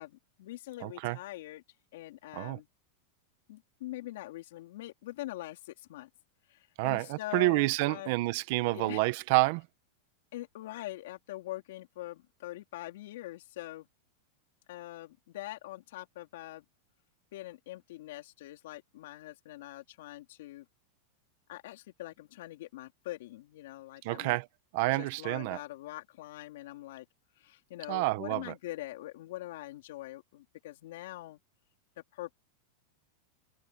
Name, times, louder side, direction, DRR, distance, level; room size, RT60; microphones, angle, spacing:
voice 1, 0.0-1.6 1.9-2.7 3.5-6.1 6.5-8.1 8.7-9.0 10.3-13.9 14.7-16.6 17.3-20.7 21.5-24.4 24.9-27.0 27.4-31.4 32.1-32.4, left 16 dB, 70° left, 4.0 m, -43 dB
voice 2, 0.8-1.2 2.3-2.6 6.8-9.7 24.0-24.5 24.7-25.6 27.9-28.5, right 22 dB, 50° right, 1.3 m, -29 dB
supercardioid pair, 155°, 0 cm